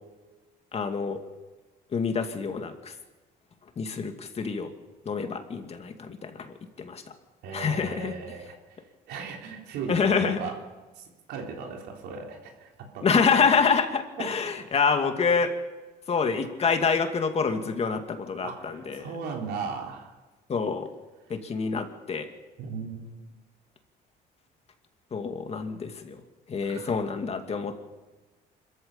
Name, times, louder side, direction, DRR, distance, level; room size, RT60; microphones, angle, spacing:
voice 1, 0.7-1.2 1.9-2.9 3.8-4.7 5.1-7.0 7.5-8.1 9.9-10.5 13.0-15.5 16.1-19.1 20.5-20.9 21.3-22.3 25.1-26.2 26.5-27.8, left 5 dB, 40° left, 6 dB, 2.4 m, -27 dB
voice 2, 7.4-8.6 9.1-10.6 11.0-12.7 12.9-13.1 14.2-14.3 18.4-20.1 22.6-23.1 26.7-26.9, right 5 dB, 85° right, 1 dB, 3.6 m, -37 dB
26.0 x 14.0 x 7.3 m, 1.2 s
cardioid pair, 110°, 17 cm